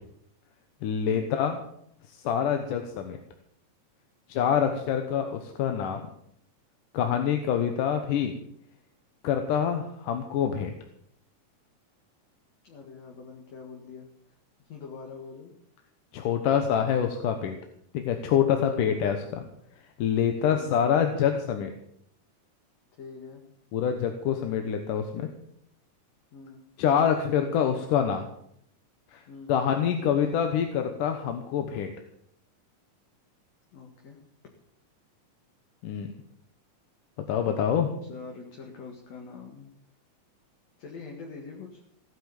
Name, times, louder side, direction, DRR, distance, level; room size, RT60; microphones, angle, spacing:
voice 1, 0.8-1.6 2.1-3.2 4.3-6.0 6.9-8.3 9.2-10.7 16.1-17.6 17.9-19.4 20.0-21.7 23.7-25.3 26.8-28.3 29.1-29.2 29.5-31.9 35.8-36.1 37.3-37.9, left 8 dB, 90° left, 5 dB, 2.7 m, -26 dB
voice 2, 12.6-14.1 14.6-15.5 18.6-19.0 20.4-20.8 23.0-23.4 26.3-26.6 29.3-29.6 33.7-34.2 38.1-39.7 40.8-41.8, left 4 dB, 55° left, 0 dB, 3.1 m, -44 dB
16.5 x 10.0 x 7.1 m, 0.71 s
omnidirectional pair, 3.6 m